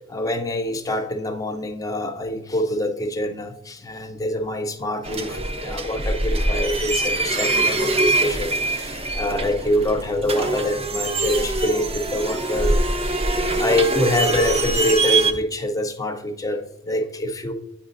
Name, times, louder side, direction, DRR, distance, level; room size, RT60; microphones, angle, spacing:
voice 1, 0.0-12.8 13.0-13.2 13.6-17.5, left 1 dB, 20° left, 7 dB, 0.5 m, -25 dB
sound 1, 5.0-15.3, right 2 dB, 30° right, 0.5 m, -23 dB
8.6 x 4.9 x 2.5 m, 0.80 s
head